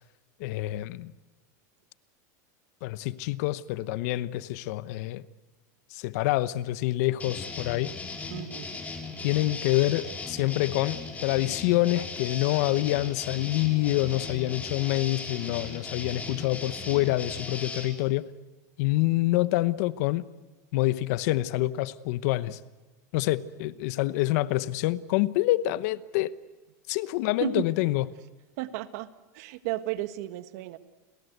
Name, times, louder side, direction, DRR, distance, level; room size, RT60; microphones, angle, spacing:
voice 1, 0.4-1.1 2.8-5.2 5.9-7.9 9.2-18.3 18.8-20.2 20.7-22.6 23.1-26.3 26.9-28.1, left 17 dB, 65° left, 1.0 m, -27 dB
sound 1, 7.2-17.9, left 3 dB, 15° left, 4.4 m, -38 dB
voice 2, 8.3-8.7 27.4-27.6 28.6-29.1 29.3-30.8, right 15 dB, 65° right, 1.6 m, -33 dB
30.0 x 21.5 x 8.1 m
supercardioid pair, 130°, 9 cm